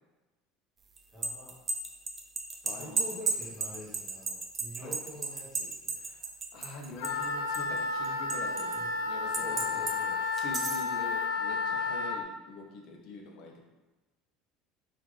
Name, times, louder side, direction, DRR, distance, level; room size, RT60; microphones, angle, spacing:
sound 1, 1.0-7.3 7.5-8.8 9.3-10.0 10.4-10.9, right 4 dB, 20° right, 0.4 m, -34 dB
voice 1, 1.1-1.5 2.8-5.9 8.7-8.9 9.3-10.4, left 1 dB, 5° left, -9 dB, 1.2 m, -46 dB
voice 2, 2.6-3.2 4.8-4.9 5.9-9.9 10.3-13.6, left 2 dB, 50° left, 1 dB, 0.7 m, -45 dB
Wind instrument woodwind instrument, 7.0-12.2, left 4 dB, 80° left, 0.4 m, -32 dB
5.5 x 2.4 x 3.2 m, 1.1 s
cardioid pair, 165°, 0 cm